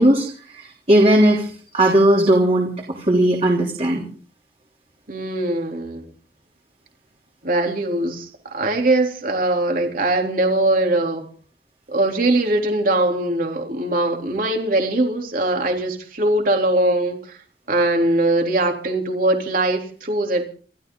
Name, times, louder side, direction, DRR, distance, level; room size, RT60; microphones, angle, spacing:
voice 1, 0.0-4.0, right 1 dB, 35° right, 3.3 m, -17 dB
voice 2, 5.1-6.1 7.4-11.3 11.9-17.4 17.7-20.4, right 2 dB, 50° right, 3.5 m, -21 dB
28.0 x 13.0 x 3.9 m
head